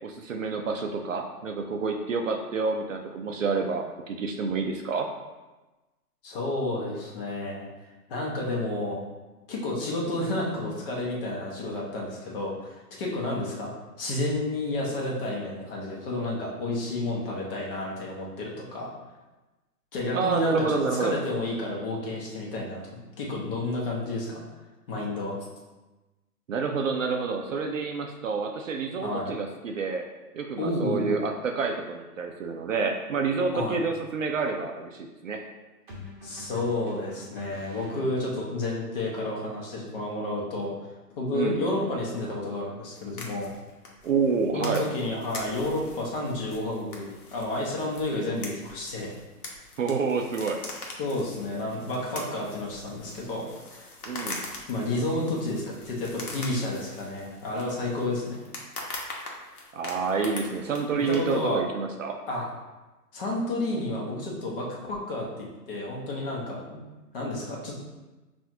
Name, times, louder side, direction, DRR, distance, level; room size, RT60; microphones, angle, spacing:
voice 1, 0.0-5.1 20.1-21.2 26.5-30.0 30.3-35.4 41.3-41.6 44.0-44.9 49.8-50.6 54.1-54.4 59.7-62.2, right 4 dB, 55° right, 4 dB, 0.5 m, -28 dB
voice 2, 6.2-7.7 8.1-9.0 9.5-13.7 14.0-18.9 19.9-22.8 23.2-24.4 24.9-25.3 29.0-29.3 30.6-31.2 33.5-33.8 36.2-40.7 41.2-43.5 44.5-49.1 51.0-53.9 54.7-58.4 61.1-61.6 62.3-62.5 63.1-66.8 67.1-67.7, left 2 dB, 35° left, -3 dB, 1.0 m, -31 dB
sound 1, 35.9-38.5, left 2 dB, 30° right, 0.9 m, -44 dB
sound 2, 42.9-61.6, left 2 dB, 65° left, 1.1 m, -42 dB
5.5 x 2.6 x 2.7 m, 1.1 s
figure-of-eight pair, 130°, 48 cm